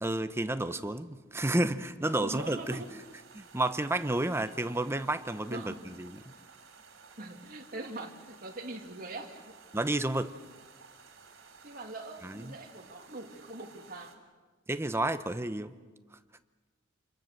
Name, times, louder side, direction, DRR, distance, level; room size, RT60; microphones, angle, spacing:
voice 1, 0.0-2.8 3.3-6.2 9.7-10.3 12.2-12.5 14.7-15.7, right 1 dB, 15° right, 10 dB, 0.8 m, -31 dB
voice 2, 2.1-2.9 5.5-5.9 7.2-9.5 11.6-14.2, right 2 dB, 45° right, 1 dB, 2.4 m, -42 dB
sound 1, 2.3-14.2, right 5 dB, 70° right, 3.5 m, -55 dB
28.5 x 22.5 x 6.7 m, 1.4 s
head